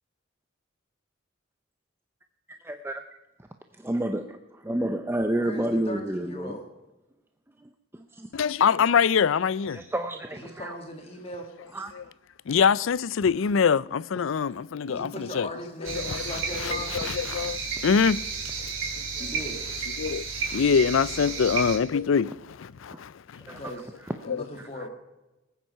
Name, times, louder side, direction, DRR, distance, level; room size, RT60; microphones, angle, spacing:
voice 1, 2.6-3.0 3.7-6.6 7.9-8.3 9.7-10.8 11.7-12.1 17.0-17.1 22.9-23.0 23.3-23.7 24.0-24.2 24.6-24.9, right 1 dB, 10° right, 0.6 m, -31 dB
voice 2, 5.3-6.7 10.4-11.5 14.9-17.0 19.2-19.6 21.2-21.3 23.6-23.8 24.2-24.9, left 1 dB, 30° left, 1.8 m, -38 dB
voice 3, 8.3-9.8 12.5-15.5 15.8-18.3 18.6-19.3 20.0-23.6 24.3-24.4, left 6 dB, 75° left, 0.4 m, -25 dB
sound 1, 15.8-21.8, right 5 dB, 90° right, 2.9 m, -32 dB
20.0 x 9.2 x 5.6 m
head